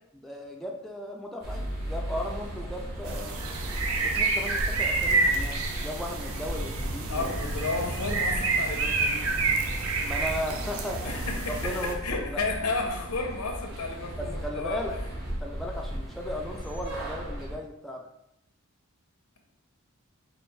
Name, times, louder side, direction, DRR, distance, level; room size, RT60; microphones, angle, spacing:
voice 1, 0.2-3.4 4.0-7.3 10.0-11.3 11.6-12.4 14.2-15.0 15.4-18.1, equal, ahead, -1 dB, 0.3 m, -36 dB
sound 1, 1.4-17.5, equal, 45° right, 1.0 m, -36 dB
sound 2, 3.0-11.9, right 3 dB, 65° right, 0.6 m, -29 dB
voice 2, 7.1-9.2 11.0-14.8, left 3 dB, 85° left, 2 dB, 0.8 m, -32 dB
4.6 x 2.5 x 3.2 m, 0.83 s
head